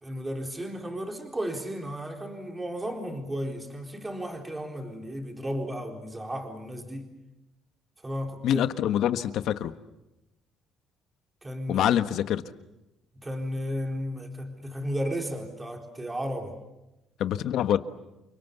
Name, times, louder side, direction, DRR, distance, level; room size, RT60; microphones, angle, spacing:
voice 1, 0.0-7.1 8.0-8.7 11.4-12.0 13.2-16.6, equal, 15° right, 3 dB, 4.1 m, -34 dB
voice 2, 8.4-9.7 11.7-12.4 17.2-17.8, left 11 dB, 65° left, 11 dB, 1.4 m, -25 dB
30.0 x 24.0 x 8.3 m, 0.96 s
cardioid pair, 135°, 0 cm